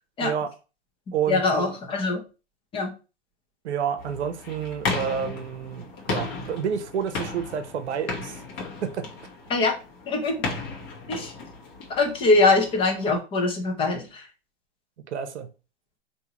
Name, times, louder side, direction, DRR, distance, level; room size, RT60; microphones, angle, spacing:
voice 1, 0.2-0.5 1.1-1.7 3.6-8.4 8.8-9.1 15.1-15.5, right 8 dB, 80° right, 0.8 m, -29 dB
voice 2, 1.3-2.2 2.7-2.9 9.5-9.7 10.1-10.3 11.1-11.3 12.0-14.2, left 3 dB, 15° left, 0.7 m, -22 dB
sound 1, 4.0-13.2, left 4 dB, 35° left, 1.1 m, -35 dB
3.6 x 2.7 x 2.8 m
hypercardioid pair, 130°, 33 cm